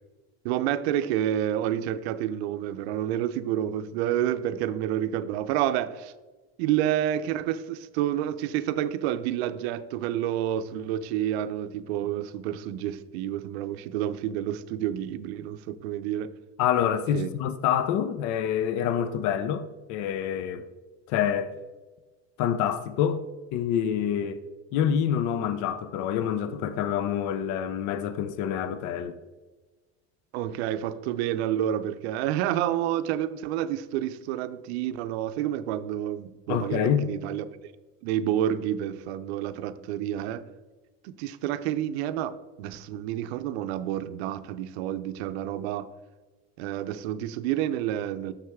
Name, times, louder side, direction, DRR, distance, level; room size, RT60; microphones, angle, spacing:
voice 1, 0.4-6.1 6.6-16.3 17.1-17.3 30.3-37.4 38.0-40.4 41.0-45.9 46.6-48.3, right 11 dB, 85° right, 0.5 m, -29 dB
voice 2, 16.6-19.6 19.9-20.7 21.1-21.5 22.4-23.2 23.5-24.4 24.7-29.2 36.5-37.1, left 9 dB, 65° left, 0.6 m, -26 dB
6.6 x 6.3 x 3.5 m
supercardioid pair, 110°, 32 cm